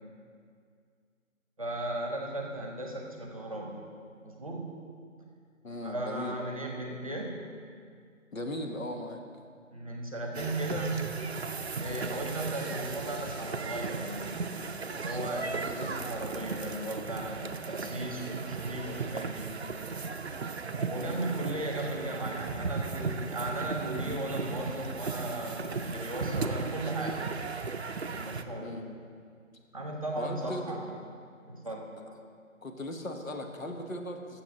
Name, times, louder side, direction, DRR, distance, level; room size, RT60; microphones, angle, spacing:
voice 1, 1.6-3.8 4.2-4.7 5.8-7.4 9.7-11.1 11.8-14.4 15.0-19.5 20.8-27.3 28.1-28.7 29.7-30.9 31.4-31.9, right 1 dB, 25° right, 0 dB, 0.9 m, -36 dB
voice 2, 5.6-6.4 8.3-9.2 28.6-28.9 30.2-30.8 32.6-34.4, left 1 dB, 75° left, 4 dB, 1.4 m, -37 dB
sound 1, 10.3-28.4, right 4 dB, 50° right, 0.5 m, -36 dB
9.2 x 7.3 x 6.1 m, 2.2 s
figure-of-eight pair, 165°, 41 cm